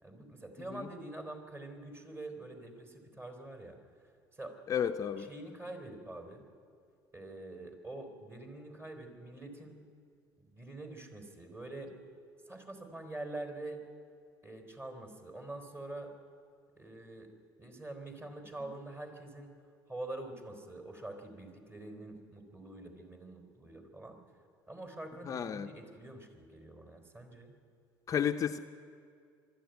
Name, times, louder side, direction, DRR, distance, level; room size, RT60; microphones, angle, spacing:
voice 1, 0.0-3.8 4.3-4.5 5.2-6.4 7.1-9.8 10.5-12.0 12.5-13.8 14.4-16.1 16.8-17.3 17.6-19.5 19.9-24.2 24.7-27.6, right 2 dB, 25° right, 4 dB, 4.0 m, -45 dB
voice 2, 4.7-5.3 25.3-25.7 28.1-28.6, left 8 dB, 40° left, 6 dB, 0.7 m, -32 dB
22.0 x 13.0 x 9.3 m, 2.3 s
supercardioid pair, 105°, 9 cm